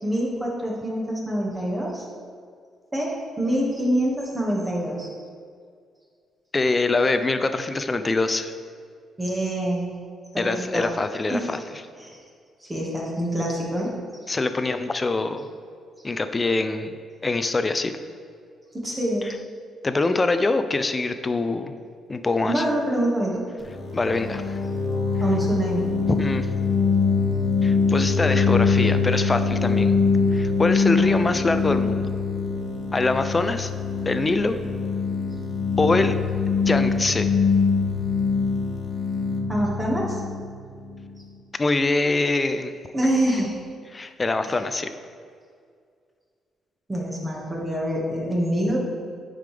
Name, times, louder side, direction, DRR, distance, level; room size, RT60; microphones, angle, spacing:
voice 1, 0.0-2.1 2.9-5.1 9.2-9.9 10.3-10.9 11.3-11.6 12.0-12.2 12.6-14.0 18.7-19.3 22.4-23.4 25.2-25.9 31.0-31.3 39.5-40.2 42.9-43.6 44.5-44.6 46.9-48.8, right 1 dB, 20° right, -3 dB, 1.8 m, -26 dB
voice 2, 6.5-8.5 10.4-11.6 14.3-15.5 16.0-16.9 17.2-17.9 19.2-19.3 19.8-21.7 22.1-22.6 23.9-24.6 26.1-26.5 27.6-30.0 30.3-32.1 32.9-33.7 34.0-34.6 35.8-36.2 36.7-37.3 41.6-42.7 43.9-44.9, left 3 dB, 25° left, 9 dB, 0.5 m, -24 dB
sound 1, 23.6-41.2, left 4 dB, 55° left, 1.0 m, -23 dB
9.4 x 5.0 x 3.4 m, 2.1 s
cardioid pair, 90°, 0 cm